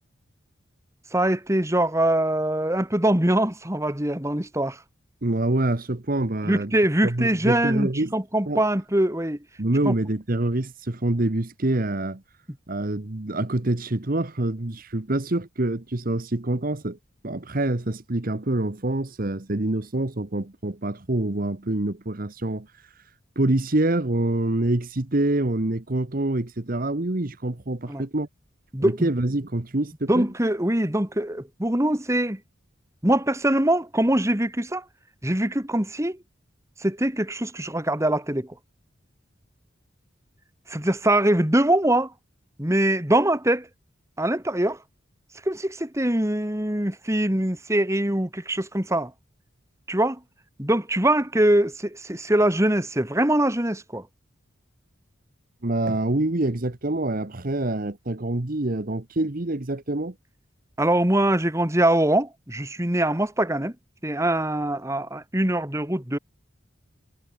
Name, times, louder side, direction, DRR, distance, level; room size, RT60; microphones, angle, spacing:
voice 1, 1.1-4.8 6.4-9.4 9.9-10.0 27.9-28.0 28.7-29.1 30.1-32.4 33.0-34.8 35.2-36.2 36.8-38.5 40.7-42.1 42.6-43.7 44.2-44.8 45.5-49.1 49.9-50.2 50.6-54.1 60.8-63.7 64.0-66.2, right 1 dB, 15° right, 2.2 m, -23 dB
voice 2, 5.2-6.7 7.0-8.2 8.5-8.6 9.6-12.2 12.7-17.0 17.2-22.9 23.3-28.3 28.8-30.3 55.6-60.1, right 2 dB, 45° right, 1.2 m, -26 dB
head